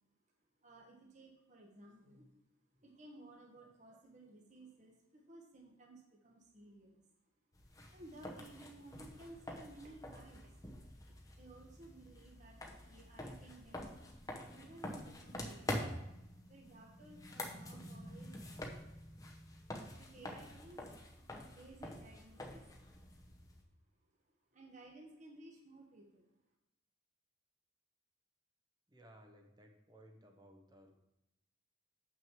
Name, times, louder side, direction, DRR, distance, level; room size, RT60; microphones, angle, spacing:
voice 1, 0.6-2.3 2.8-7.0 7.9-10.5 11.4-13.9 14.5-15.9 16.5-18.7 19.9-20.9 21.4-22.6 24.5-26.3, right 2 dB, 40° right, -1 dB, 1.3 m, -57 dB
sound 1, 7.5-23.6, left 1 dB, 20° left, 0.9 m, -47 dB
voice 2, 28.9-30.9, right 1 dB, 20° right, 3 dB, 0.9 m, -60 dB
7.7 x 6.1 x 4.6 m, 0.87 s
head